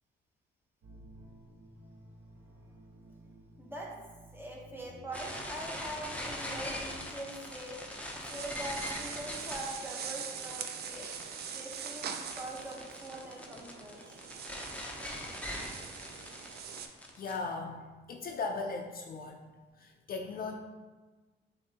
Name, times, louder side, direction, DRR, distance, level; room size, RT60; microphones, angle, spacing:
sound 1, 0.8-7.1, equal, 80° right, 1.1 m, -55 dB
voice 1, 3.6-3.9 4.3-7.8 8.3-14.0, right 1 dB, 10° right, -3 dB, 1.1 m, -43 dB
sound 2, 5.1-17.4, left 1 dB, 5° left, 0.7 m, -42 dB
sound 3, 8.3-16.9, right 7 dB, 55° right, 0.4 m, -43 dB
voice 2, 17.2-19.4 19.8-20.6, left 4 dB, 45° left, 2 dB, 0.4 m, -38 dB
6.4 x 2.7 x 2.8 m, 1.3 s
cardioid pair, 90°, 20 cm